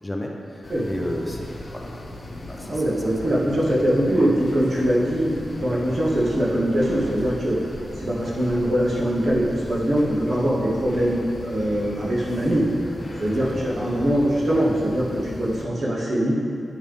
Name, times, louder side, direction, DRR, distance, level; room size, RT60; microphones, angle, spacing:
voice 1, 0.0-1.9 2.5-3.4 3.8-3.9 13.3-13.7, left 1 dB, 15° left, 0 dB, 0.6 m, -33 dB
sound 1, 0.6-15.6, left 1 dB, 40° left, 1.0 m, -37 dB
voice 2, 2.7-7.6 8.0-12.7 13.2-16.3, equal, 55° right, -6 dB, 1.5 m, -22 dB
9.8 x 3.6 x 3.5 m, 2.6 s
wide cardioid pair, 80°, 0 cm